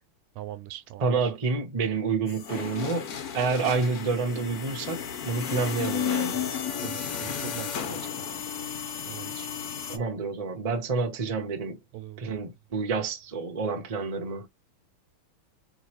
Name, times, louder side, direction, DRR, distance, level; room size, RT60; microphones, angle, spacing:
voice 1, 0.4-1.1 6.8-8.0 9.1-9.5 11.9-12.2, right 14 dB, 85° right, 1.5 m, -41 dB
voice 2, 1.0-6.4 9.9-11.8 12.2-14.5, right 4 dB, 35° right, 0.5 m, -29 dB
sound 1, 2.3-10.0, left 8 dB, 55° left, 1.2 m, -33 dB
5.0 x 3.1 x 3.0 m
omnidirectional pair, 2.3 m